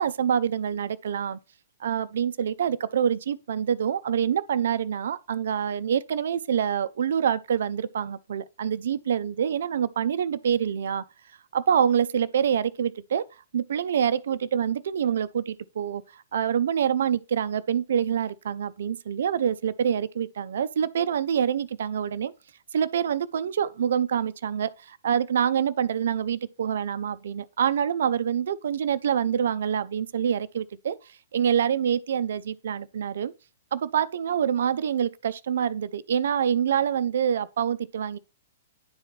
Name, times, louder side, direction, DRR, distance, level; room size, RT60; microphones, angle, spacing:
voice 1, 0.0-1.4 1.8-11.0 11.5-13.3 13.5-22.3 22.7-31.0 31.3-33.3 33.7-38.2, right 8 dB, 55° right, 0.4 m, -26 dB
10.5 x 4.4 x 3.2 m
figure-of-eight pair, 110°, 0 cm